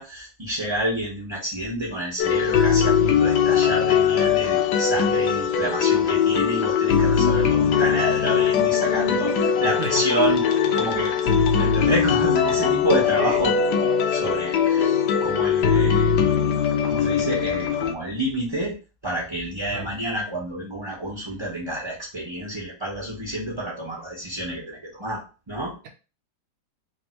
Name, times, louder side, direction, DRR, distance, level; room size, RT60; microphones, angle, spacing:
voice 1, 0.0-10.5 10.7-13.6 13.8-16.1 16.8-18.7 19.0-25.7, right 1 dB, 25° right, -4 dB, 0.5 m, -29 dB
sound 1, 2.2-17.9, left 7 dB, 70° left, 1.1 m, -21 dB
voice 2, 9.8-10.0 11.2-11.3 13.2-13.4 19.7-19.9, right 5 dB, 70° right, 3 dB, 1.2 m, -32 dB
3.4 x 2.6 x 4.3 m, 0.33 s
omnidirectional pair, 2.1 m